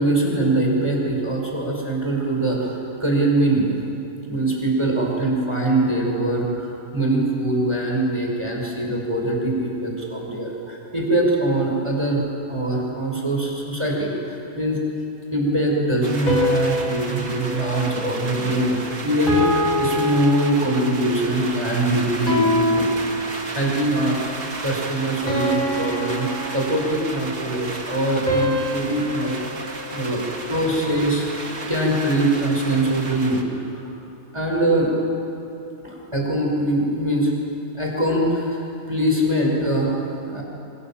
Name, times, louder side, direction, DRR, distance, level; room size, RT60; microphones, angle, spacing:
voice 1, 0.0-3.7 4.3-14.8 15.3-22.9 23.5-29.4 29.9-31.3 31.7-33.4 33.7-33.8 34.3-34.9 35.8-37.3 37.7-40.4, right 1 dB, 5° right, -2 dB, 5.3 m, -22 dB
sound 1, 16.0-33.4, right 3 dB, 30° right, 1.7 m, -34 dB
sound 2, 16.3-18.8 19.3-21.0 22.3-23.8 25.3-27.1 28.3-30.6, left 1 dB, 10° left, 4.8 m, -26 dB
28.5 x 25.5 x 7.5 m, 2.8 s
omnidirectional pair, 4.2 m